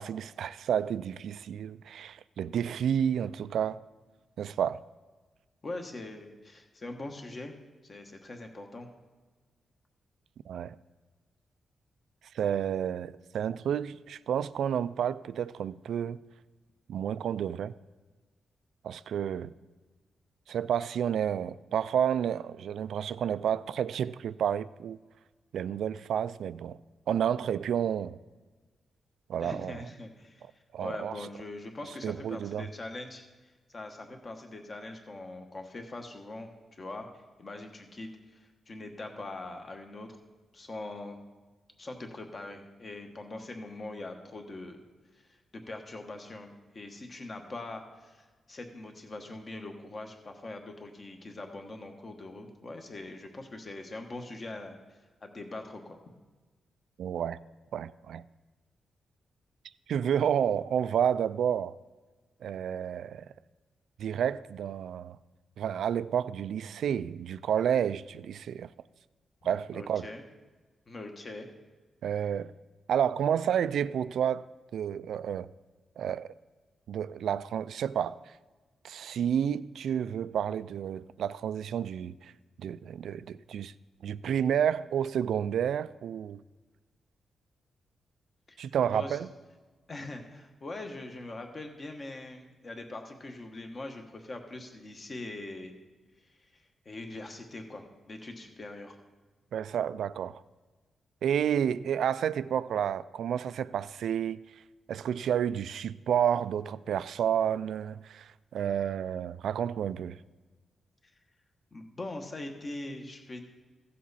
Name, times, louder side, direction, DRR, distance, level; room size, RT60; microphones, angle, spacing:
voice 1, 0.0-3.8 4.4-4.8 10.5-10.8 12.3-16.2 16.9-17.7 18.8-19.5 20.5-25.0 25.5-26.8 27.1-28.2 29.3-29.8 30.7-31.1 32.0-32.7 57.0-57.4 57.7-58.3 59.9-61.8 62.4-63.3 64.0-65.2 65.6-68.7 69.4-70.1 72.0-72.5 72.9-74.4 74.7-75.5 76.0-76.3 76.9-78.2 78.8-82.3 82.6-83.7 84.0-86.4 88.6-89.3 99.5-100.4 101.2-104.4 104.9-110.2, right 9 dB, 80° right, 0.3 m, -30 dB
voice 2, 5.6-7.5 7.8-8.9 29.4-37.1 37.4-40.2 40.5-41.2 41.8-44.8 45.1-54.8 55.2-56.0 69.7-70.2 70.9-71.5 88.5-88.6 88.9-89.2 89.9-95.7 96.5-99.0 111.7-113.5, left 2 dB, 30° left, 1.2 m, -42 dB
15.5 x 7.4 x 4.2 m
wide cardioid pair, 140°, 0 cm